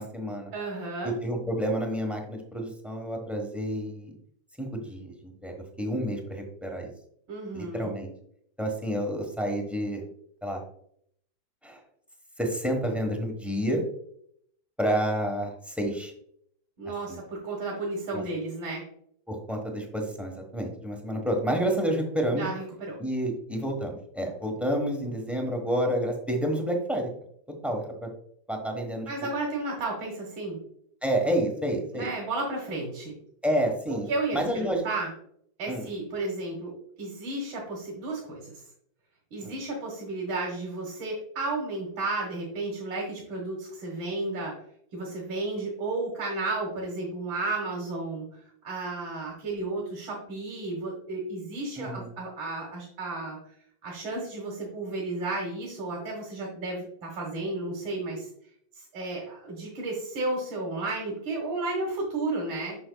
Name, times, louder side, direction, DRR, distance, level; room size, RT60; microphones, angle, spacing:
voice 1, 0.0-0.5 1.0-4.1 4.6-6.9 7.5-8.1 8.6-10.0 10.4-10.6 11.6-11.8 12.4-13.8 14.8-16.1 17.1-17.2 18.1-18.2 19.3-22.5 23.0-27.1 27.6-28.1 28.5-29.1 31.0-32.1 33.4-34.1 34.3-34.8 35.7-35.9 39.4-39.5 51.8-52.1, equal, ahead, 2 dB, 0.8 m, -29 dB
voice 2, 0.5-1.1 7.3-7.9 16.8-18.8 22.3-23.0 29.1-30.6 31.9-33.1 33.9-35.1 35.6-36.7 37.0-38.6 39.3-44.5 44.9-48.3 48.6-53.4 53.8-58.3 58.7-62.8, right 2 dB, 80° right, -2 dB, 2.3 m, -33 dB
8.7 x 6.1 x 2.3 m, 0.66 s
omnidirectional pair, 2.1 m